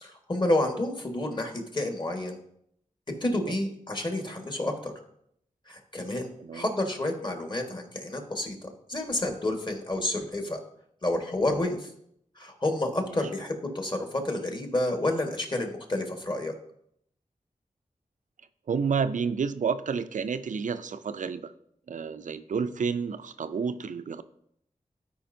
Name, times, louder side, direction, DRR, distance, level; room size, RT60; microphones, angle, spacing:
voice 1, 0.0-2.4 3.2-4.9 5.7-10.6 11.0-11.9 12.4-16.5, left 1 dB, 35° left, 3 dB, 1.5 m, -30 dB
voice 2, 18.7-21.5 21.9-24.2, right 6 dB, 70° right, 12 dB, 0.4 m, -30 dB
13.0 x 5.0 x 2.7 m, 0.71 s
wide cardioid pair, 60°, 13 cm